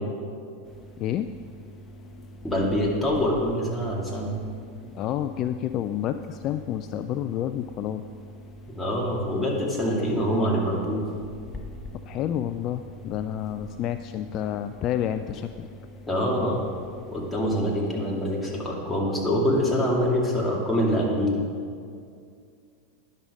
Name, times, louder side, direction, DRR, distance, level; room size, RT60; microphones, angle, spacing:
sound 1, 0.6-18.5, equal, 25° left, 1.1 m, -44 dB
voice 1, 2.4-4.3 8.7-11.1 16.1-16.6 17.1-21.4, equal, 5° left, -4 dB, 2.3 m, -25 dB
voice 2, 4.9-8.0 12.1-15.7, left 11 dB, 45° left, 10 dB, 0.3 m, -29 dB
10.5 x 6.5 x 5.0 m, 2.3 s
hypercardioid pair, 95°, 0 cm